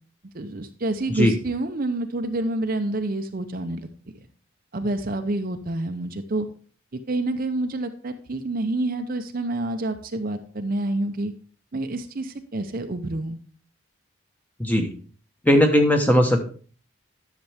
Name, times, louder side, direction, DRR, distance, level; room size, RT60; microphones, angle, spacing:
voice 1, 0.3-3.9 4.7-6.5 6.9-11.3 11.7-13.4, right 2 dB, 40° right, 7 dB, 0.6 m, -28 dB
voice 2, 15.4-16.5, left 1 dB, 10° left, 4 dB, 1.0 m, -18 dB
10.5 x 6.8 x 3.4 m, 0.42 s
head